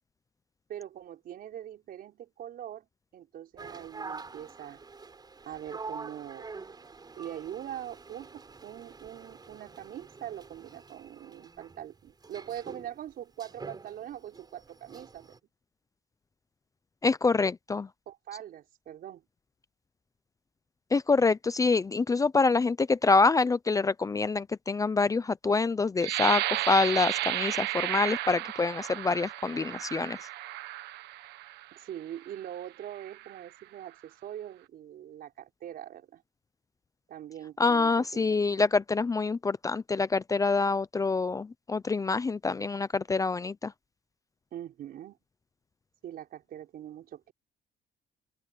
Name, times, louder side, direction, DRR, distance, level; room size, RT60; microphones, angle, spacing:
voice 1, 0.7-2.9 3.1-4.8 5.5-6.5 7.2-15.4 18.1-19.2 31.7-36.2 37.1-38.4 44.5-45.2 46.0-47.3, right 11 dB, 60° right, 5.3 m, -42 dB
sound 1, 3.6-15.4, right 4 dB, 25° right, 5.5 m, -46 dB
voice 2, 17.0-17.9 20.9-30.2 37.6-43.7, left 4 dB, 20° left, 0.6 m, -26 dB
sound 2, 26.0-31.7 32.3-32.5 32.9-33.4, right 15 dB, 80° right, 1.3 m, -33 dB
open air
cardioid pair, 110°, 17 cm